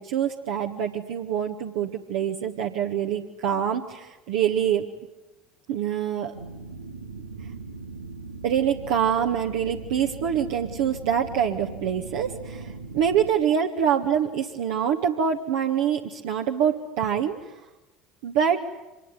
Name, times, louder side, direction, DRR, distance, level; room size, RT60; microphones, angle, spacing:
voice 1, 0.0-4.9 5.7-6.4 8.4-17.4 18.2-18.7, right 8 dB, 60° right, 1 dB, 1.6 m, -25 dB
sound 1, 6.3-13.3, right 3 dB, 85° right, 1.5 m, -39 dB
26.0 x 21.0 x 9.9 m, 1.0 s
figure-of-eight pair, 65°, 0 cm